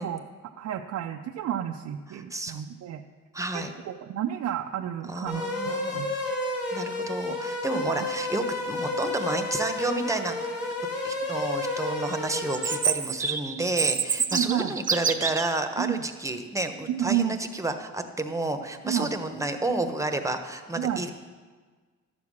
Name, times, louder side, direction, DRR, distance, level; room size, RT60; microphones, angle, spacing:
voice 1, 0.0-3.0 3.5-5.4 5.9-6.1 14.3-14.7 15.8-16.0 16.9-17.4 18.9-19.1 20.8-21.0, right 10 dB, 65° right, 2 dB, 0.6 m, -30 dB
voice 2, 2.1-2.6 3.3-3.7 5.1-6.1 6.7-10.4 11.0-21.1, right 2 dB, 10° right, 7 dB, 1.0 m, -30 dB
sound 1, 5.3-12.8, left 2 dB, 55° left, 2.8 m, -31 dB
Chirp tweet, 12.5-15.5, right 6 dB, 25° right, 0.7 m, -27 dB
11.5 x 7.3 x 6.3 m, 1.5 s
cardioid pair, 90°, 30 cm